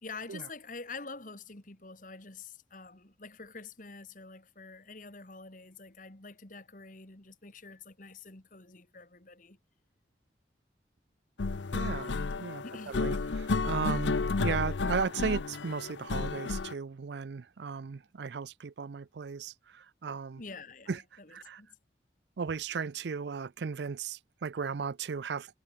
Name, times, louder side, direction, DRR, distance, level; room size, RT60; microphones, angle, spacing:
voice 1, 0.0-9.6 12.0-12.3 12.6-13.0 20.4-21.7, left 4 dB, 45° left, 2.2 m, -47 dB
sound 1, 11.4-16.7, left 4 dB, 75° left, 0.6 m, -32 dB
voice 2, 11.7-12.1 12.4-20.4 20.9-21.0 21.3-21.6 22.4-25.5, right 5 dB, 65° right, 0.5 m, -36 dB
head